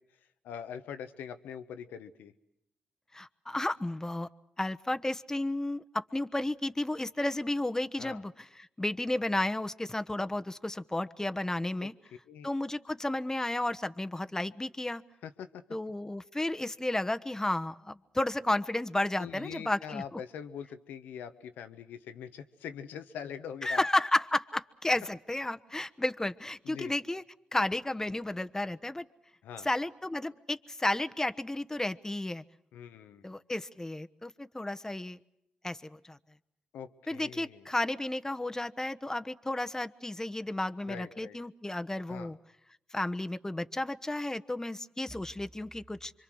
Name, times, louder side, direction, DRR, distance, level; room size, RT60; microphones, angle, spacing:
voice 1, 0.4-2.3 8.0-8.2 11.8-11.9 12.3-12.5 15.2-15.6 19.2-23.8 26.6-26.9 29.4-29.7 32.7-33.3 36.7-37.7 40.8-41.4 42.1-42.3, left 8 dB, 85° left, 10 dB, 1.2 m, -43 dB
voice 2, 3.1-4.3 4.6-11.9 12.4-15.0 15.7-20.2 23.6-27.2 27.5-29.1 29.6-32.4 33.2-35.2 35.6-36.2 37.1-42.4 42.9-46.1, left 1 dB, 20° left, 11 dB, 1.2 m, -32 dB
27.0 x 24.0 x 6.4 m, 0.78 s
supercardioid pair, 45°, 3 cm